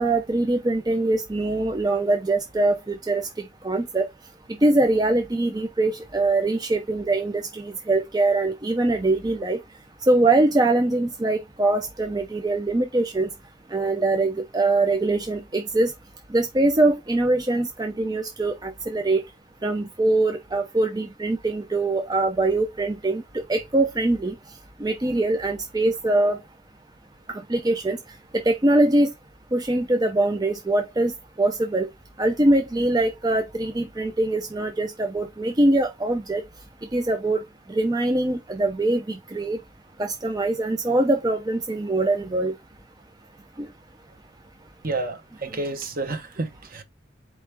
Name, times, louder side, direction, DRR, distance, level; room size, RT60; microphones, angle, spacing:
voice 1, 0.0-3.3 3.6-4.1 4.6-9.6 10.1-13.3 13.7-15.9 16.3-19.2 19.6-24.3 24.8-26.4 27.3-28.0 28.3-29.1 29.5-31.1 31.4-31.9 32.2-36.4 36.9-37.4 37.7-39.6 40.0-42.5 43.6-43.7, right 2 dB, 20° right, 0.5 m, -23 dB
voice 2, 44.8-46.8, right 2 dB, 45° right, 1.0 m, -30 dB
4.4 x 3.1 x 3.3 m
head